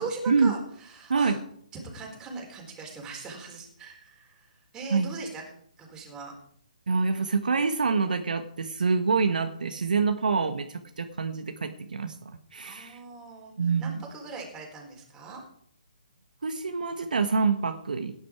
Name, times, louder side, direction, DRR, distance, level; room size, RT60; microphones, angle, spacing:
voice 1, 0.0-1.4 1.7-5.4 5.8-6.3 12.6-13.5 13.8-15.4, right 3 dB, 15° right, 0 dB, 4.2 m, -40 dB
voice 2, 6.9-12.1 12.5-13.0 13.6-14.0 16.4-18.1, right 4 dB, 70° right, 7 dB, 1.3 m, -26 dB
17.5 x 10.0 x 4.7 m, 0.66 s
figure-of-eight pair, 140°, 5 cm